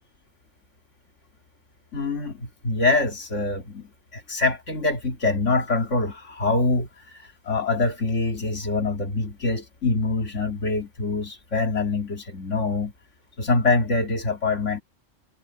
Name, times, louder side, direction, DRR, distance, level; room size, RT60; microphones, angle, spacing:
voice 1, 1.9-6.9 7.5-12.9 13.4-14.8, left 3 dB, 70° left, 2.7 m, -24 dB
omnidirectional pair, 1.3 m